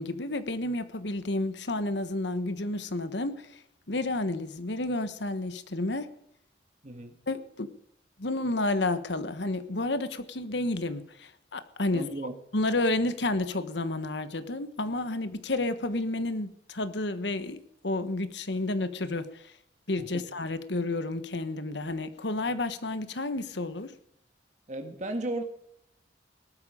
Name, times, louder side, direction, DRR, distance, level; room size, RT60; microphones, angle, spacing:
voice 1, 0.0-3.6 3.9-6.1 7.3-7.7 8.2-12.1 12.5-19.4 19.9-23.9, left 2 dB, 65° left, 12 dB, 1.3 m, -31 dB
voice 2, 6.8-7.2 11.9-12.3 20.0-20.2 24.7-25.4, right 1 dB, 40° right, 5 dB, 1.8 m, -35 dB
18.5 x 12.5 x 5.1 m, 0.74 s
head